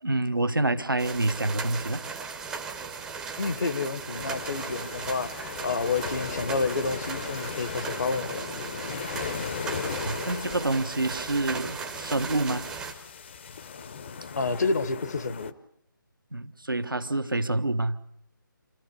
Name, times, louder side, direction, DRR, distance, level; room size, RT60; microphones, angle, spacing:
voice 1, 0.0-2.0 10.0-12.7 16.3-18.0, right 2 dB, 80° right, 1.3 m, -27 dB
sound 1, 1.0-12.9, right 5 dB, 5° right, 0.8 m, -37 dB
voice 2, 3.4-8.4 14.4-15.5, left 4 dB, 55° left, 1.1 m, -29 dB
sound 2, 4.1-15.5, left 6 dB, 35° left, 0.9 m, -38 dB
26.5 x 15.0 x 8.2 m
figure-of-eight pair, 150°, 11 cm